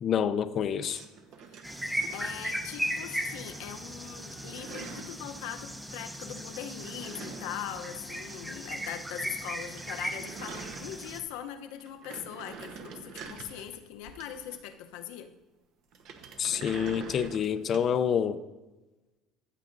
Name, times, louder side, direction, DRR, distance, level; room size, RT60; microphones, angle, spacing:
voice 1, 0.0-1.0 16.4-18.4, left 8 dB, 40° left, 0.5 m, -27 dB
sound 1, 0.8-2.9 3.2-3.8 4.1-5.3 6.5-8.7 8.9-9.0 9.3-9.4 9.6-11.4 11.7-14.8 15.9-18.0, right 5 dB, 60° right, 1.1 m, -46 dB
voice 2, 1.5-15.3, left 10 dB, 80° left, 0.8 m, -41 dB
sound 2, 1.6-11.2, equal, 5° right, 0.7 m, -37 dB
15.0 x 7.4 x 2.6 m
cardioid pair, 120°, 0 cm